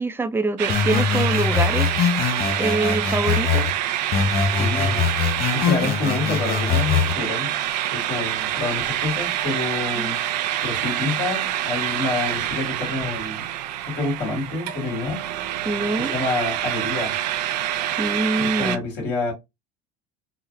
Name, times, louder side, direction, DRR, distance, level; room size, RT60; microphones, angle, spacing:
voice 1, 0.0-1.9 2.6-3.7 10.0-10.2 15.6-16.1 18.0-18.8, right 2 dB, 10° right, 0.4 m, -25 dB
sound 1, 0.6-18.8, right 12 dB, 85° right, 0.4 m, -26 dB
sound 2, 0.7-3.7 4.1-7.1, left 6 dB, 45° left, 0.8 m, -23 dB
voice 2, 4.6-5.1 5.5-7.5 7.9-10.2 10.6-13.4 13.9-15.2 16.0-17.2 18.4-19.3, left 3 dB, 65° left, 2.2 m, -27 dB
3.9 x 2.0 x 2.5 m
hypercardioid pair, 85°, 21 cm